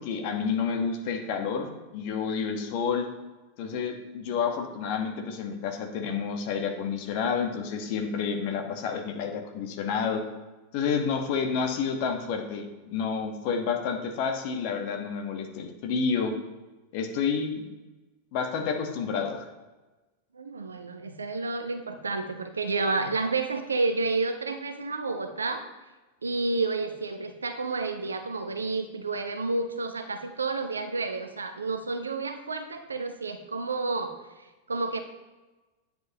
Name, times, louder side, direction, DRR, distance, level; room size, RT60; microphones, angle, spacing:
voice 1, 0.0-3.1 3.6-10.2 10.7-16.3 16.9-17.6 18.3-19.4, left 6 dB, 45° left, 4 dB, 1.2 m, -29 dB
voice 2, 20.3-25.6 26.2-35.0, right 3 dB, 75° right, 8 dB, 0.7 m, -30 dB
9.5 x 7.1 x 2.9 m, 1.2 s
figure-of-eight pair, 90°, 0 cm